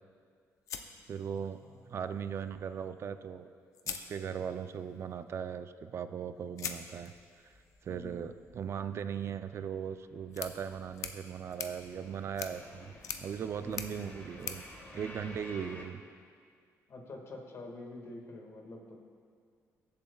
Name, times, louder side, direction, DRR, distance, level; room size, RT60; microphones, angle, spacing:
sound 1, 0.7-1.8 3.1-3.2 3.7-4.8 6.6-15.8, left 7 dB, 65° left, 0.6 m, -45 dB
voice 1, 1.1-1.6 1.9-3.5 3.9-7.1 7.8-12.9 13.2-14.6 14.9-16.0, right 7 dB, 50° right, 10 dB, 0.4 m, -38 dB
sound 2, 7.1-9.1 9.4-15.9, left 1 dB, 25° left, 1.6 m, -53 dB
voice 2, 7.9-8.2 13.6-13.9 16.9-19.0, left 2 dB, 50° left, 1 dB, 1.8 m, -47 dB
21.0 x 7.5 x 2.3 m, 2.1 s
cardioid pair, 110°, 6 cm